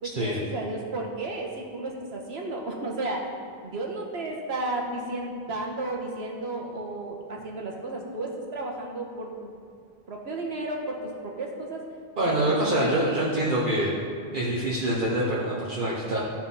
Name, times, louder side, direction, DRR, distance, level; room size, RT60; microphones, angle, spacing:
voice 1, 0.0-3.3 3.6-9.5 10.1-11.8 12.3-13.2, right 2 dB, 85° right, 0 dB, 1.5 m, -33 dB
voice 2, 12.2-13.9 14.3-16.2, right 1 dB, 55° right, -6 dB, 1.2 m, -25 dB
13.0 x 4.6 x 5.4 m, 2.2 s
omnidirectional pair, 1.0 m